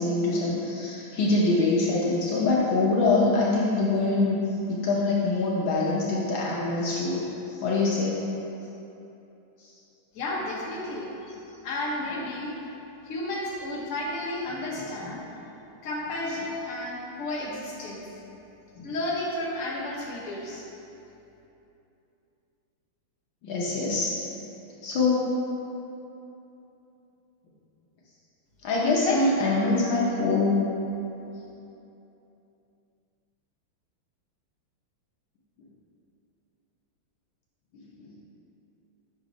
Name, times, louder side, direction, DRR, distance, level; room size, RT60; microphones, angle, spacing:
voice 1, 0.0-4.4 4.7-8.2 9.6-9.7 18.8-18.9 23.4-24.1 24.8-25.3 28.6-30.6 38.0-38.1, left 3 dB, 70° left, -5 dB, 1.5 m, -24 dB
voice 2, 10.1-11.1 11.6-12.5 13.0-15.2 15.8-18.0 18.8-20.6 29.0-30.0, left 1 dB, 50° left, -5 dB, 1.2 m, -32 dB
6.5 x 3.9 x 5.0 m, 2.9 s
omnidirectional pair, 2.4 m